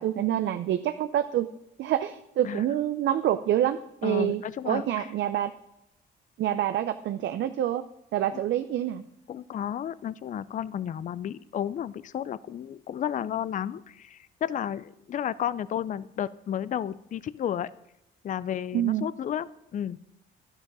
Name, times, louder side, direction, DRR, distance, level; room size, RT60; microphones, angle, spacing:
voice 1, 0.0-1.5 1.8-5.5 6.4-7.8 8.1-9.0 18.7-19.1, right 11 dB, 65° right, 9 dB, 0.5 m, -27 dB
voice 2, 4.0-5.1 8.3-8.4 9.3-17.7 18.2-20.0, left 10 dB, 40° left, 18 dB, 0.4 m, -32 dB
11.0 x 6.3 x 6.1 m, 0.84 s
cardioid pair, 90°, 20 cm